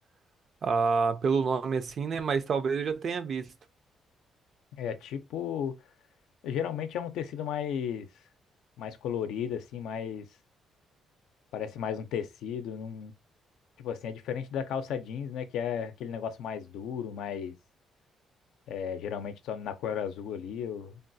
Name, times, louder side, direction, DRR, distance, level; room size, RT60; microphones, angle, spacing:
voice 1, 0.6-3.5, right 5 dB, 55° right, 0.4 m, -28 dB
voice 2, 4.7-5.8 6.4-8.1 8.8-10.3 11.5-13.1 13.8-17.6 18.7-21.0, left 8 dB, 85° left, 0.5 m, -34 dB
3.5 x 2.3 x 2.6 m
cardioid pair, 90°, 0 cm